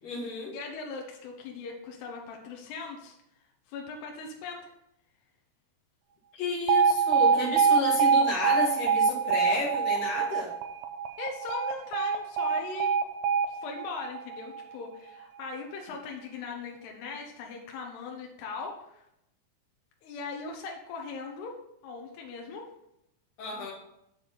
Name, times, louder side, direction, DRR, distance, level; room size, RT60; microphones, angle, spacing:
voice 1, 0.0-0.6 6.3-10.5 23.4-23.7, left 3 dB, 50° left, -2 dB, 2.7 m, -32 dB
voice 2, 0.5-3.2 3.7-4.7 11.2-12.9 13.5-19.1 20.0-22.7, left 4 dB, 80° left, 1 dB, 3.0 m, -39 dB
Alarm, 6.7-14.7, right 6 dB, 80° right, 2.2 m, -25 dB
7.3 x 6.9 x 4.1 m, 0.81 s
omnidirectional pair, 4.7 m